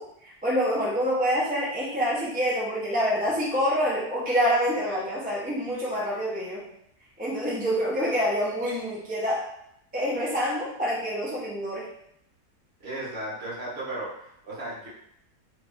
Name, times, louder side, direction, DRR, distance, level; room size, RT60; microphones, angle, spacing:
voice 1, 0.0-6.7 7.2-9.5 9.9-11.9, equal, 10° right, -7 dB, 0.5 m, -26 dB
voice 2, 12.8-14.9, right 1 dB, 45° right, -7 dB, 1.2 m, -35 dB
3.1 x 2.6 x 3.5 m, 0.73 s
omnidirectional pair, 1.7 m